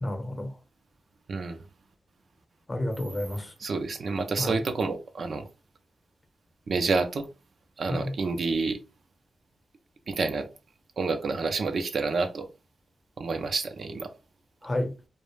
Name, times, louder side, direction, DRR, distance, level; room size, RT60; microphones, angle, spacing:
voice 1, 0.0-0.5 2.7-3.5 4.4-4.6 7.9-8.1 14.6-14.9, left 1 dB, 25° left, 0.8 m, -30 dB
voice 2, 3.6-5.5 6.7-7.3 7.8-8.8 10.1-10.5 11.0-12.5 13.2-14.1, right 4 dB, 70° right, 0.4 m, -28 dB
2.3 x 2.1 x 3.1 m
cardioid pair, 55°, 0 cm